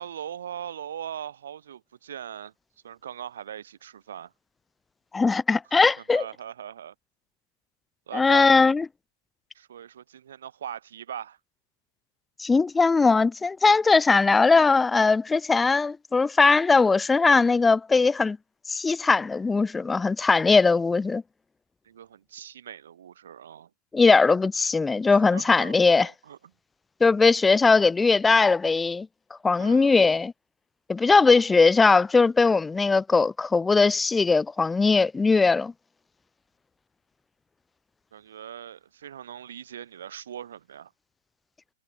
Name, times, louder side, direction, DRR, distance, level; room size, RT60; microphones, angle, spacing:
voice 1, 0.0-2.5 2.8-4.3 6.0-6.9 8.1-8.6 9.5-11.4 21.8-23.7 25.1-26.4 29.6-30.0 38.1-40.9, right 9 dB, 70° right, 4.4 m, -40 dB
voice 2, 5.1-6.2 8.1-8.8 12.4-18.4 18.7-21.2 23.9-26.1 27.0-29.1 29.4-30.3 30.9-35.7, left 4 dB, 10° left, 0.5 m, -20 dB
hypercardioid pair, 105°, 0 cm